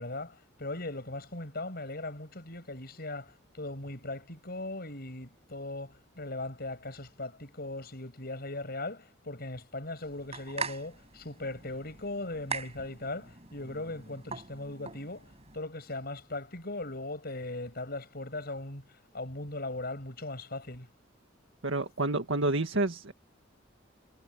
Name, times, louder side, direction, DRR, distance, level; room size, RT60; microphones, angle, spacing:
voice 1, 0.0-20.9, left 2 dB, 55° left, 6.8 m, -39 dB
sound 1, 10.0-15.6, right 5 dB, 35° right, 4.7 m, -42 dB
voice 2, 21.6-23.1, right 2 dB, 85° right, 1.8 m, -29 dB
head